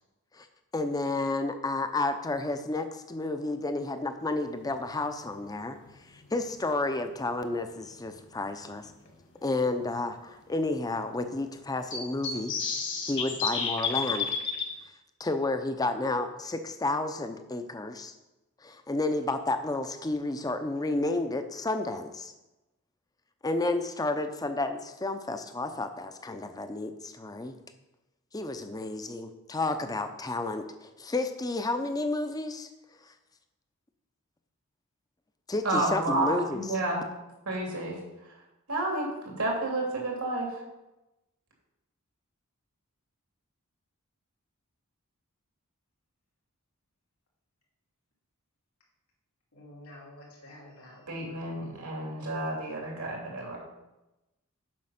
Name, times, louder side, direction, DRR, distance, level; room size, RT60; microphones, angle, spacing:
voice 1, 0.7-5.8 6.1-8.9 9.4-12.5 13.1-14.3 15.2-18.1 18.6-22.3 23.4-27.5 28.3-32.7 35.5-36.6, left 2 dB, 15° left, 8 dB, 0.6 m, -31 dB
sound 1, 6.3-6.4 8.4-8.5 9.0-9.1 9.4-9.5 11.9-14.7, left 5 dB, 55° left, 1.6 m, -30 dB
voice 2, 35.6-37.0 37.5-38.0 38.7-40.6 51.1-53.6, right 2 dB, 85° right, -1 dB, 2.8 m, -30 dB
voice 3, 49.5-51.1, left 1 dB, 90° left, -4 dB, 2.5 m, -49 dB
7.6 x 5.9 x 5.8 m, 0.99 s
head